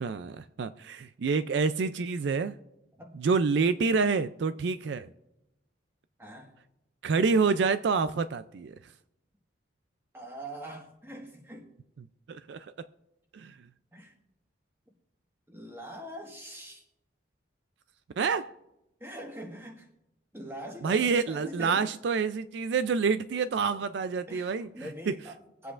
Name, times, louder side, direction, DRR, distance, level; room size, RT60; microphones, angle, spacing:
voice 1, 0.0-2.6 3.1-5.1 7.0-8.8 12.0-12.9 13.3-13.6 18.2-18.5 20.8-25.2, right 5 dB, 65° right, 0.4 m, -28 dB
voice 2, 6.2-6.5 10.1-11.7 13.9-14.1 15.5-16.8 19.0-19.9 20.3-21.9 24.3-25.7, equal, 15° right, 1.4 m, -43 dB
23.5 x 8.0 x 2.5 m
head